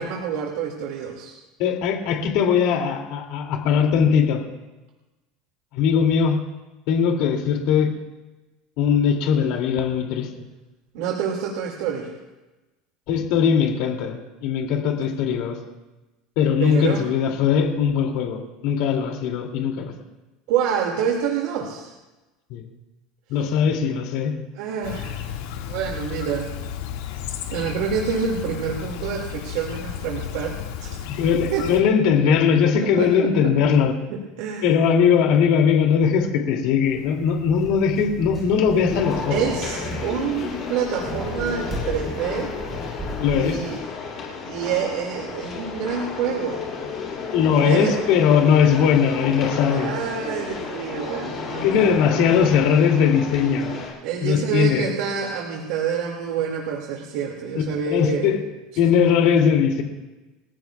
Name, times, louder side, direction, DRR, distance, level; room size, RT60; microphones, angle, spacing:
voice 1, 0.0-1.4 10.9-12.1 16.6-17.0 20.5-21.9 24.5-25.3 25.7-26.5 27.5-31.1 31.5-31.7 32.7-33.5 34.1-34.8 39.3-42.5 43.3-43.8 44.4-46.7 47.5-48.1 49.7-51.9 52.2-52.5 54.0-58.3, right 7 dB, 65° right, -1 dB, 2.3 m, -27 dB
voice 2, 1.6-4.4 5.7-6.4 6.9-7.9 8.8-10.3 13.1-15.6 16.4-19.9 22.5-22.7 23.3-24.3 31.1-33.9 34.6-39.4 43.2-43.6 47.3-49.9 51.6-53.8 54.2-54.9 57.9-58.4 58.8-59.8, left 7 dB, 55° left, 2 dB, 2.7 m, -20 dB
Chirp tweet, 24.8-31.8, left 9 dB, 85° left, 2.0 m, -33 dB
sound 1, 36.8-43.8, right 1 dB, 15° right, 5.2 m, -35 dB
sound 2, 38.9-53.9, left 5 dB, 30° left, 5.6 m, -32 dB
29.5 x 15.0 x 2.4 m, 1.1 s
cardioid pair, 170°, 0 cm